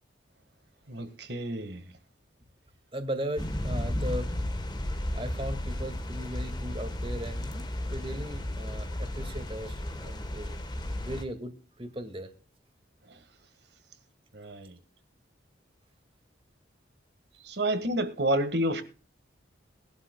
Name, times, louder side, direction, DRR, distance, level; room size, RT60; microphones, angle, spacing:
voice 1, 0.9-1.8 14.3-14.7 17.4-18.8, right 1 dB, 60° right, 1.6 m, -29 dB
voice 2, 2.9-4.3 5.1-7.6 7.9-10.6 11.0-12.3, right 1 dB, 30° right, 2.0 m, -37 dB
sound 1, 3.4-11.2, left 1 dB, 25° left, 1.3 m, -34 dB
21.0 x 12.0 x 2.3 m
head